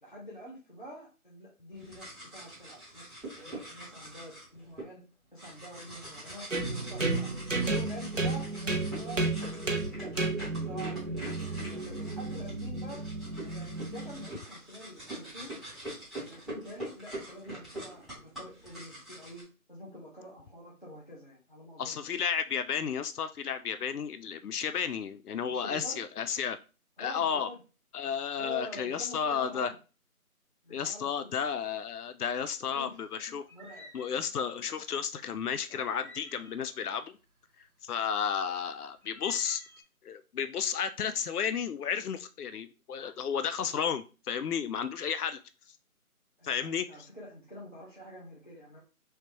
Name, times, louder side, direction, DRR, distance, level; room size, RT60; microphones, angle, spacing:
voice 1, 0.0-5.0 5.3-7.3 7.7-13.0 13.4-15.6 16.2-22.0 25.5-26.0 27.0-27.6 28.4-29.8 30.6-31.3 32.7-32.9 33.5-33.9 46.4-48.8, equal, 35° left, -6 dB, 0.8 m, -47 dB
sound 1, 1.7-4.8 5.4-19.4, right 1 dB, ahead, 0.8 m, -44 dB
sound 2, 6.5-14.3, right 3 dB, 60° right, 0.7 m, -33 dB
voice 2, 21.8-26.6 27.0-27.5 27.9-29.7 30.7-33.5 33.9-37.1 37.8-39.6 40.0-45.4 45.7-45.8 46.4-47.1, left 7 dB, 85° left, 12 dB, 0.5 m, -32 dB
sound 3, 33.5-34.4 35.8-36.9 39.0-39.8, left 1 dB, 85° right, 1.1 m, -52 dB
3.2 x 3.2 x 3.0 m, 0.33 s
figure-of-eight pair, 180°, 44 cm